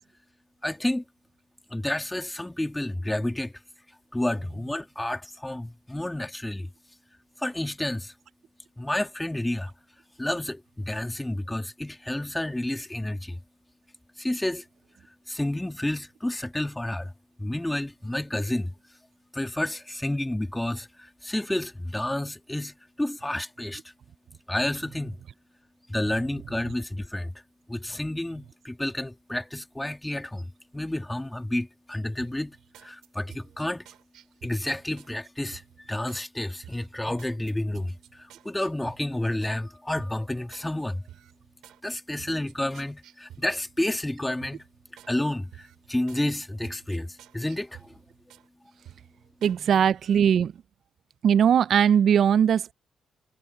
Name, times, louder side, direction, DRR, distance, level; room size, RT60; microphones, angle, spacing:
voice 1, 0.6-1.0 1.7-3.5 4.1-6.7 7.4-8.1 8.8-9.7 10.2-13.4 14.2-14.6 15.3-17.1 17.4-18.7 19.3-23.8 24.5-25.2 25.9-27.3 27.7-32.6 32.8-33.9 34.4-35.6 35.9-41.0 41.8-44.6 45.1-47.9, left 1 dB, 10° left, 2.4 m, -30 dB
sound 1, 32.2-35.1 35.5-36.3 36.6-39.6 40.0-40.7 41.0-44.0 44.4-45.1 45.5-48.5 48.8-49.6 49.9-50.2, right 12 dB, 85° right, 6.5 m, -52 dB
voice 2, 49.4-50.5 51.2-52.7, right 8 dB, 65° right, 0.4 m, -20 dB
supercardioid pair, 65°, 0 cm